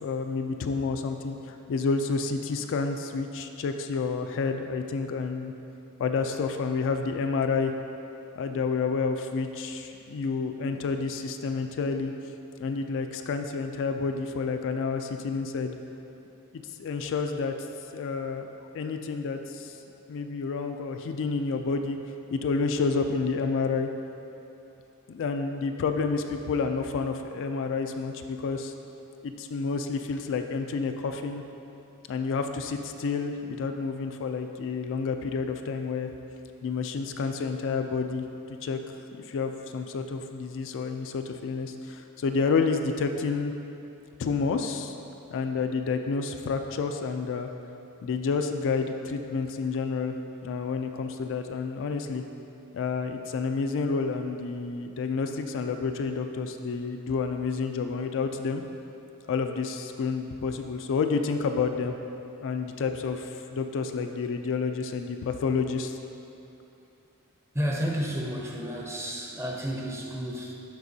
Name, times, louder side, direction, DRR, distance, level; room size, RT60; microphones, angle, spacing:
voice 1, 0.0-5.5 6.0-7.7 8.4-12.1 12.6-15.8 16.5-17.5 17.9-18.5 18.7-19.8 20.1-22.0 22.3-23.9 25.1-28.7 29.2-31.4 32.1-36.1 36.6-38.2 38.6-38.8 39.1-43.5 44.2-44.9 45.3-47.5 48.0-52.2 52.7-58.6 59.3-62.0 62.4-66.0, left 4 dB, 60° left, 6 dB, 0.3 m, -29 dB
voice 2, 67.5-70.5, equal, 10° right, -2 dB, 0.6 m, -31 dB
11.0 x 4.4 x 2.7 m, 2.9 s
head